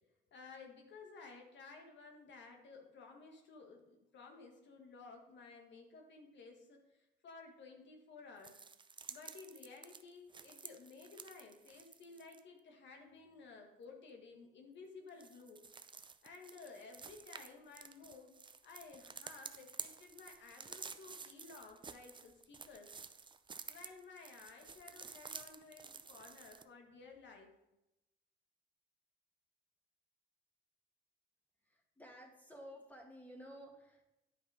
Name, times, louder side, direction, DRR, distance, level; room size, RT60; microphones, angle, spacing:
voice 1, 0.0-8.6 9.1-15.6 16.2-18.4 18.6-22.9 23.7-27.5, left 4 dB, 65° left, 3 dB, 1.5 m, -55 dB
sound 1, 8.4-12.4 15.1-26.6, right 5 dB, 25° right, 0.5 m, -52 dB
voice 2, 31.6-34.0, equal, 10° left, 1 dB, 2.0 m, -54 dB
9.9 x 5.0 x 4.8 m, 0.92 s
cardioid pair, 90°, 20 cm